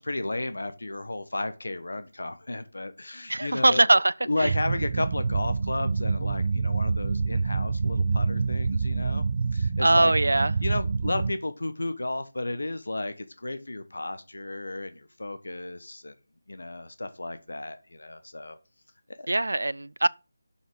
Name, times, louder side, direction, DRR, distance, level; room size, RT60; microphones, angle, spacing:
voice 1, 0.0-9.2 9.5-10.1 10.6-16.1 16.5-18.6 19.1-19.3, left 2 dB, 75° left, 1.1 m, -33 dB
voice 2, 3.3-4.1 4.4-4.5 9.8-10.5 19.3-20.1, right 2 dB, 80° right, 0.4 m, -21 dB
sound 1, 4.4-11.3, right 4 dB, 40° right, 0.7 m, -27 dB
7.1 x 6.5 x 5.2 m
figure-of-eight pair, 165°, 0 cm